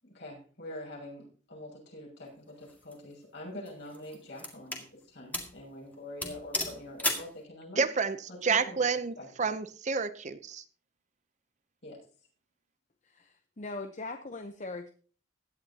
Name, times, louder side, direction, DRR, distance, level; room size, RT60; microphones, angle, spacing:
voice 1, 0.0-7.8 8.3-8.8 9.2-9.5 11.8-12.1, left 1 dB, 60° left, -2 dB, 6.4 m, -45 dB
sound 1, 2.6-2.9 3.7-4.9 5.3-5.6 5.9-6.0 6.2-7.3, left 2 dB, 10° left, 1.9 m, -34 dB
voice 2, 7.8-8.2 8.4-10.6, right 5 dB, 35° right, 12 dB, 0.6 m, -29 dB
voice 3, 13.0-14.9, left 3 dB, 40° left, 7 dB, 0.8 m, -40 dB
16.5 x 11.0 x 2.8 m, 0.40 s
head